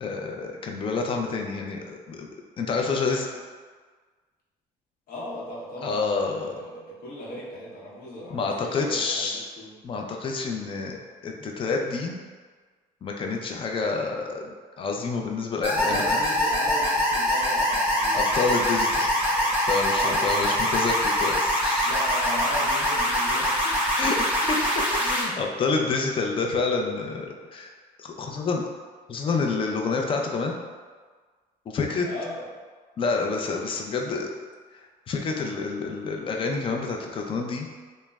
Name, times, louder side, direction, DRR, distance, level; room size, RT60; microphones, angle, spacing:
voice 1, 0.0-2.3 2.6-3.3 5.8-6.6 8.3-9.5 9.8-11.0 11.2-12.2 13.0-14.5 14.8-16.2 18.1-19.2 19.7-22.1 23.9-24.6 25.0-27.7 28.0-28.6 29.1-30.5 31.7-32.1 33.0-34.3 35.1-37.7, left 4 dB, 30° left, 2 dB, 0.3 m, -28 dB
voice 2, 5.1-9.7 11.4-11.5 15.7-19.5 19.9-20.6 21.8-23.8 32.0-32.5, left 1 dB, 60° left, -6 dB, 0.8 m, -37 dB
sound 1, 15.6-25.2, equal, 10° right, 0.9 m, -24 dB
3.0 x 2.0 x 2.2 m, 1.5 s
cardioid pair, 110°, 17 cm